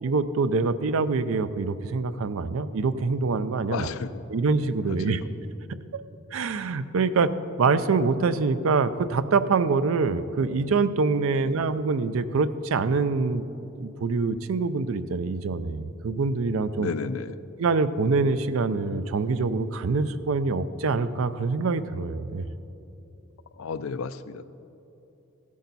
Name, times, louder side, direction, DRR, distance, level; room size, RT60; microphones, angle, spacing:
voice 1, 0.0-3.9 4.3-5.2 5.9-6.0 6.3-7.3 7.6-13.4 13.8-16.9 17.6-22.4, right 4 dB, 85° right, 13 dB, 0.5 m, -25 dB
voice 2, 3.7-4.2 5.0-5.3 11.3-11.5 16.8-17.4 23.6-24.4, left 5 dB, 85° left, 14 dB, 0.4 m, -33 dB
15.5 x 8.5 x 4.1 m, 2.9 s
head